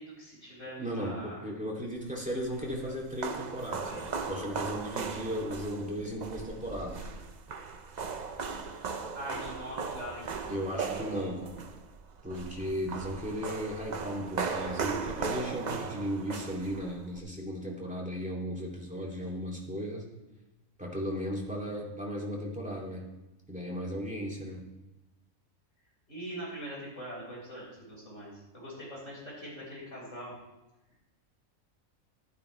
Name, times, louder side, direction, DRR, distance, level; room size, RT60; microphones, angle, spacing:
voice 1, 0.0-1.5 3.8-4.0 9.1-11.3 26.1-30.4, equal, 60° left, -5 dB, 5.6 m, -42 dB
voice 2, 0.8-7.2 10.5-11.6 12.2-20.0 20.8-23.1 23.5-24.7, equal, 5° right, -2 dB, 2.6 m, -36 dB
sound 1, 2.2-17.2, right 5 dB, 40° right, 0.7 m, -38 dB
14.5 x 12.5 x 3.3 m, 1.0 s
omnidirectional pair, 1.5 m